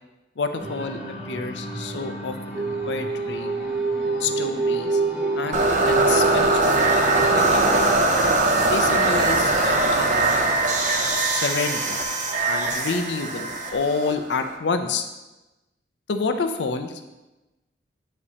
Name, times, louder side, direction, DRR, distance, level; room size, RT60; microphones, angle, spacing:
voice 1, 0.4-3.5 4.1-5.0 5.3-7.9 8.7-10.5 11.3-12.0 12.4-15.0 16.1-16.9, left 4 dB, 70° left, 7 dB, 0.5 m, -29 dB
sound 1, 0.6-7.9, right 3 dB, 10° right, 1.1 m, -26 dB
sound 2, 5.5-14.5, right 2 dB, 40° right, 0.6 m, -21 dB
8.2 x 5.0 x 2.8 m, 1.0 s
head